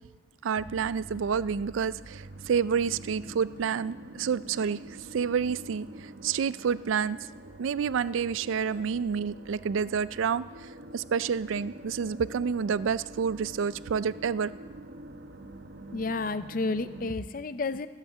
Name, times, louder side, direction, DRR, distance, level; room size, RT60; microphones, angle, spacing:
voice 1, 0.4-4.8 5.1-7.2 7.6-10.4 10.9-14.5, right 6 dB, 80° right, 17 dB, 0.4 m, -29 dB
sound 1, 0.5-17.2, right 2 dB, 65° right, 1.0 m, -46 dB
voice 2, 15.9-17.9, left 3 dB, 45° left, 13 dB, 0.5 m, -31 dB
16.5 x 8.2 x 7.4 m, 1.4 s
head